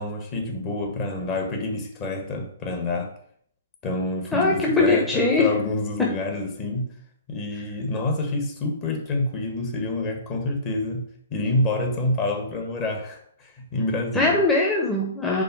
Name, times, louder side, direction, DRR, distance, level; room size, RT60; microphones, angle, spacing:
voice 1, 0.0-3.1 3.8-6.9 7.3-14.4, left 2 dB, 30° left, 3 dB, 1.5 m, -27 dB
voice 2, 4.3-5.5 14.1-15.4, left 2 dB, 10° left, -3 dB, 1.0 m, -21 dB
5.3 x 3.7 x 5.7 m, 0.63 s
figure-of-eight pair, 125°, 0 cm